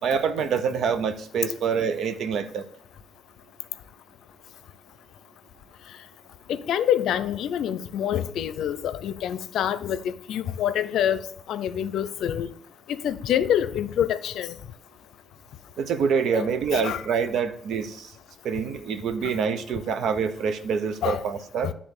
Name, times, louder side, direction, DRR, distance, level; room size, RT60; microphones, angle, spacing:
voice 1, 0.0-2.7 15.8-18.1 18.4-21.7, right 6 dB, 70° right, 0.8 m, -26 dB
voice 2, 6.5-12.5 12.9-14.6 16.3-17.0 19.2-19.4 21.0-21.2 21.6-21.7, left 10 dB, 80° left, 0.5 m, -26 dB
10.0 x 3.7 x 6.5 m
cardioid pair, 90°, 0 cm